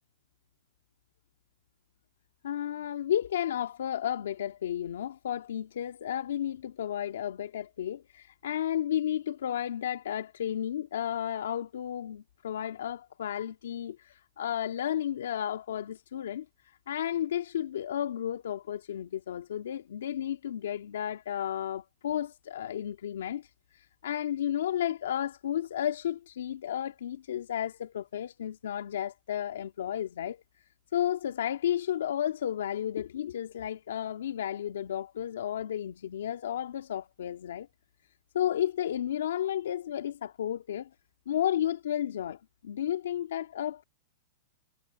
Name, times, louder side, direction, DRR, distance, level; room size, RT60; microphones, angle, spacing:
voice 1, 2.4-16.5 16.9-30.4 30.9-37.7 38.3-40.9 41.3-43.8, left 10 dB, 85° left, 2.0 m, -32 dB
hypercardioid pair, 145°, 0 cm